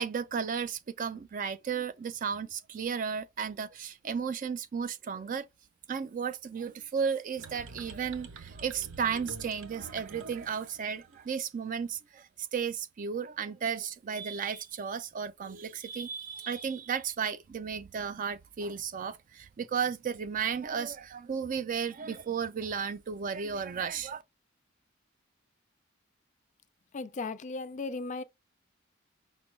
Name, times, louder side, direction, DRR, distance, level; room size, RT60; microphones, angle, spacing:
voice 1, 0.0-5.5 5.9-24.2, right 6 dB, 40° right, 0.4 m, -34 dB
sound 1, 7.4-11.3, right 4 dB, 90° right, 0.7 m, -47 dB
voice 2, 26.9-28.2, left 3 dB, 40° left, 0.4 m, -36 dB
5.1 x 2.2 x 3.1 m
head